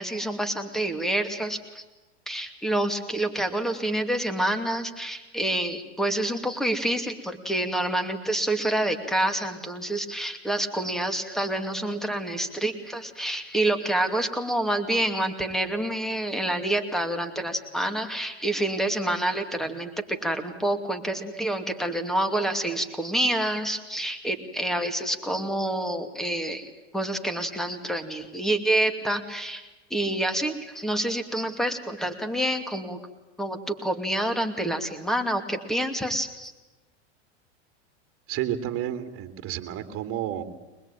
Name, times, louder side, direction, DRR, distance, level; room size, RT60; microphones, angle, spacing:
voice 1, 0.0-1.8 2.3-19.9 20.2-26.7 26.9-33.0 33.4-36.5, right 1 dB, ahead, 9 dB, 2.5 m, -27 dB
voice 2, 38.3-40.4, right 11 dB, 40° right, 8 dB, 2.8 m, -31 dB
23.5 x 21.0 x 9.0 m, 1.1 s
hypercardioid pair, 115°, 35 cm